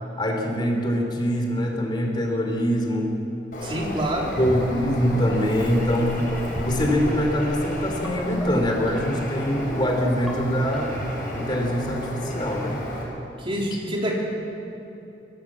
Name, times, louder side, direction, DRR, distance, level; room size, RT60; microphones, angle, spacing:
voice 1, 0.2-3.1 4.3-6.2 6.6-11.1 11.3-12.8, equal, 25° left, 2 dB, 3.1 m, -24 dB
Bird, 3.5-13.0, left 1 dB, 50° left, 5.2 m, -34 dB
voice 2, 3.6-4.3 13.4-14.2, right 1 dB, 30° right, -2 dB, 3.8 m, -27 dB
sound 1, 3.6-8.8, equal, 55° right, 4.9 m, -40 dB
sound 2, 4.3-4.8 5.2-5.4 6.2-6.7 7.0-7.3 8.0-8.5 8.9-9.2 9.9-10.3 10.7-11.1, equal, ahead, 3.9 m, -35 dB
22.0 x 17.0 x 7.5 m, 2.8 s
head